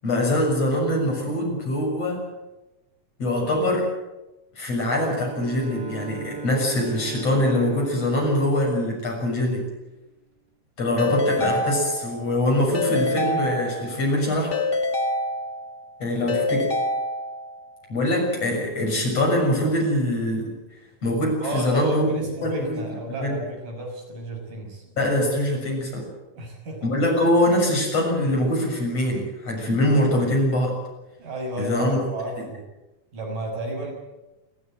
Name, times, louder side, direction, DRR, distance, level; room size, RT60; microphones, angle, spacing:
voice 1, 0.0-2.2 3.2-3.9 4.6-9.7 10.8-14.5 16.0-16.7 17.9-20.5 21.0-22.8 23.2-23.4 25.0-26.1 26.8-30.8 31.6-32.0, left 1 dB, 50° left, 0 dB, 8.0 m, -23 dB
Bowed string instrument, 5.2-9.9, right 6 dB, 35° right, 2.8 m, -39 dB
Keyboard (musical) / Ringtone, 11.0-12.3 12.7-14.1 14.5-15.9 16.3-17.6, left 2 dB, 25° left, 1.2 m, -26 dB
voice 2, 16.1-16.7 21.4-24.8 26.3-26.9 31.2-32.6 33.1-33.9, right 1 dB, 85° right, 1 dB, 7.8 m, -32 dB
29.0 x 13.5 x 9.0 m, 1.0 s
omnidirectional pair, 3.7 m